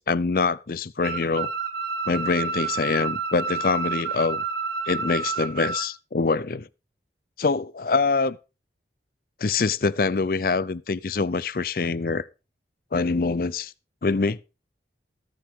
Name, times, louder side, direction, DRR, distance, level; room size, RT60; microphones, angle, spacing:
voice 1, 0.0-1.5 2.1-4.4 4.9-6.7 7.4-8.4 9.4-12.3 12.9-13.7 14.0-14.4, left 4 dB, 50° left, 0.5 m, -24 dB
sound 1, 1.0-5.9, right 4 dB, 65° right, 1.8 m, -29 dB
19.5 x 7.5 x 3.6 m
head